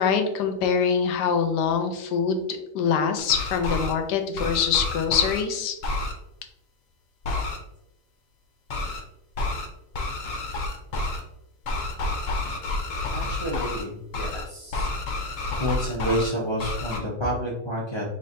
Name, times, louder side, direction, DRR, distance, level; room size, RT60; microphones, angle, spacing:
voice 1, 0.0-5.8, left 6 dB, 80° left, 6 dB, 1.2 m, -24 dB
sound 1, 3.2-3.9 4.4-5.4 5.8-6.1 7.2-7.6 8.7-9.0 9.4-9.7 9.9-11.2 11.6-13.8 14.1-14.4 14.7-16.3 16.6-17.0, left 2 dB, 60° left, 0.9 m, -29 dB
voice 2, 13.1-14.9 15.6-18.0, equal, 35° left, -6 dB, 0.4 m, -29 dB
4.3 x 3.3 x 2.6 m, 0.85 s
omnidirectional pair, 1.8 m